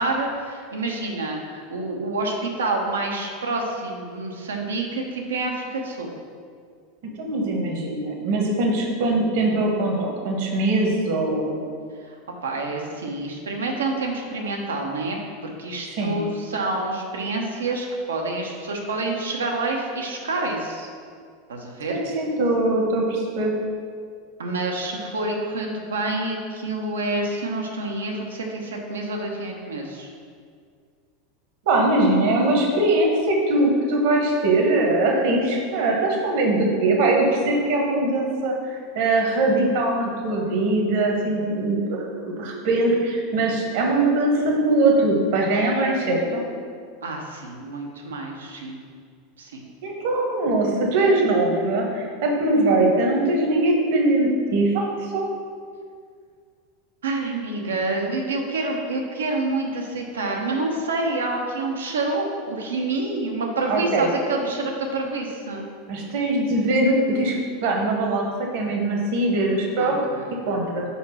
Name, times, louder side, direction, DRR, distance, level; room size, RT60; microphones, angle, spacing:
voice 1, 0.0-6.1 12.1-20.9 21.5-21.9 24.4-30.1 47.0-48.8 49.4-49.7 57.0-65.7 69.8-70.4, right 2 dB, 80° right, 1 dB, 0.9 m, -28 dB
voice 2, 7.0-11.6 16.0-16.3 21.9-23.5 31.6-42.1 42.4-46.4 49.8-55.3 63.7-64.1 65.9-67.4 67.6-70.0 70.5-70.9, right 2 dB, 60° right, 0 dB, 1.2 m, -21 dB
4.7 x 4.3 x 5.7 m, 2.1 s
hypercardioid pair, 90°, 0 cm